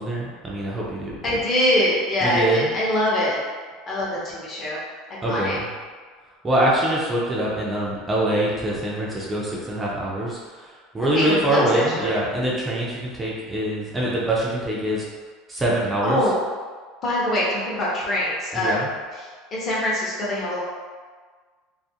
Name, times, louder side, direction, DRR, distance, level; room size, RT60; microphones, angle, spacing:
voice 1, 0.0-1.4 2.2-2.7 5.2-5.7 6.4-10.7 10.9-15.0 15.5-16.2 18.5-18.9, right 1 dB, 10° right, -5 dB, 0.4 m, -24 dB
voice 2, 1.2-3.4 3.9-4.8 5.3-5.6 11.0-12.1 16.0-16.4 17.0-18.8 19.2-20.6, left 1 dB, 25° left, -6 dB, 0.7 m, -24 dB
2.5 x 2.4 x 2.7 m, 1.5 s
cardioid pair, 165°, 0 cm